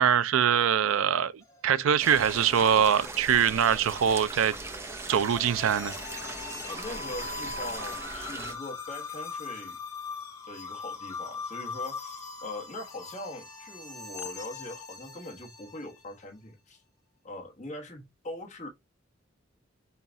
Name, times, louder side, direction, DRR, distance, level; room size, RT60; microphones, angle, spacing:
voice 1, 0.0-1.3 1.6-4.5 5.1-5.9, right 8 dB, 90° right, 0.4 m, -23 dB
sound 1, 1.4-16.0, left 4 dB, 15° left, 0.9 m, -41 dB
sound 2, 2.0-8.5, right 3 dB, 15° right, 0.6 m, -39 dB
voice 2, 6.6-9.8 10.4-16.8 17.2-18.7, left 1 dB, 35° left, 1.2 m, -41 dB
5.6 x 2.3 x 3.7 m
head